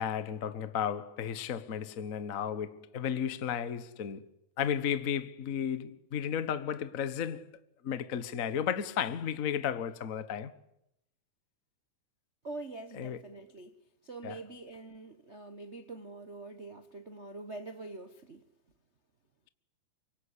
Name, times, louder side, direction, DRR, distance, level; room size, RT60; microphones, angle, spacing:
voice 1, 0.0-4.3 4.6-7.5 7.8-10.5 12.9-13.2 14.2-14.4, left 8 dB, 75° left, 0.7 m, -33 dB
voice 2, 12.4-18.4, right 2 dB, 70° right, 0.6 m, -45 dB
25.0 x 24.0 x 9.9 m
omnidirectional pair, 3.7 m